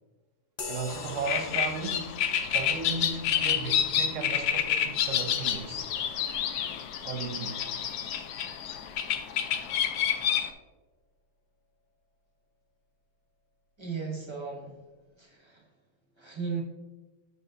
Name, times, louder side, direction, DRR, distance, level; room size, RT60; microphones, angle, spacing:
sound 1, 0.6-8.5, left 4 dB, 55° left, 0.5 m, -47 dB
voice 1, 0.7-5.9 7.0-7.7, right 5 dB, 65° right, 0.9 m, -36 dB
sound 2, 0.9-10.5, left 9 dB, 80° left, 1.1 m, -29 dB
voice 2, 13.8-14.8 15.2-15.6 16.2-16.6, right 5 dB, 25° right, 0.6 m, -36 dB
7.9 x 5.6 x 2.6 m
omnidirectional pair, 1.7 m